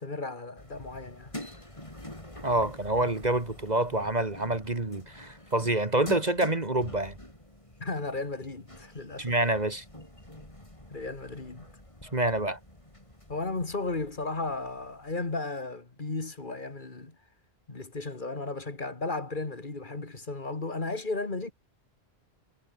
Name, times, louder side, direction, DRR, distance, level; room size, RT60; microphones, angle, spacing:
voice 1, 0.0-1.3 7.8-9.4 10.9-11.8 13.3-17.2 17.7-21.5, left 3 dB, 45° left, 2.5 m, -35 dB
sound 1, 0.6-15.4, left 1 dB, 30° left, 5.6 m, -47 dB
voice 2, 2.4-7.2 9.2-9.8 12.1-12.6, right 2 dB, 40° right, 2.3 m, -27 dB
omnidirectional pair, 1.1 m